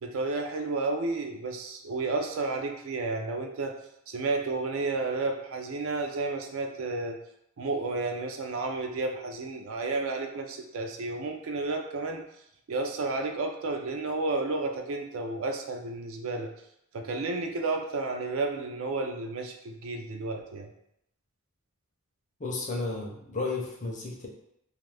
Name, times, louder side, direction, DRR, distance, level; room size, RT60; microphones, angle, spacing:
voice 1, 0.0-3.7 4.1-7.2 7.6-12.2 12.7-16.5 16.9-20.7, right 3 dB, 70° right, 4 dB, 0.4 m, -31 dB
voice 2, 22.4-24.3, left 3 dB, 35° left, 0 dB, 0.5 m, -33 dB
2.5 x 2.4 x 3.2 m, 0.77 s
head